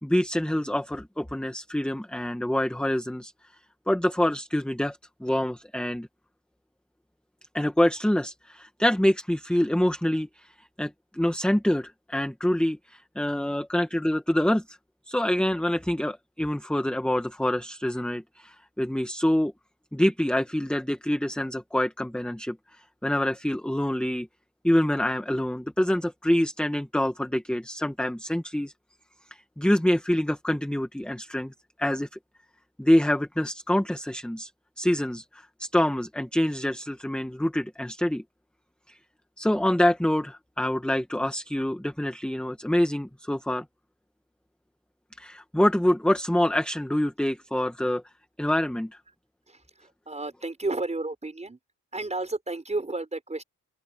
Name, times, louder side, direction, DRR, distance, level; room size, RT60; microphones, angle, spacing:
voice 1, 0.0-3.3 3.9-6.1 7.5-14.8 15.1-19.5 19.9-24.3 24.6-28.7 29.3-31.5 31.8-32.1 32.8-34.5 34.8-38.2 38.9-39.0 39.4-43.6 45.2-48.0 48.4-48.9, left 1 dB, 5° left, 1.7 m, -26 dB
voice 2, 50.1-51.6 51.9-53.4, right 2 dB, 20° right, 5.8 m, -31 dB
open air
cardioid pair, 85°, 34 cm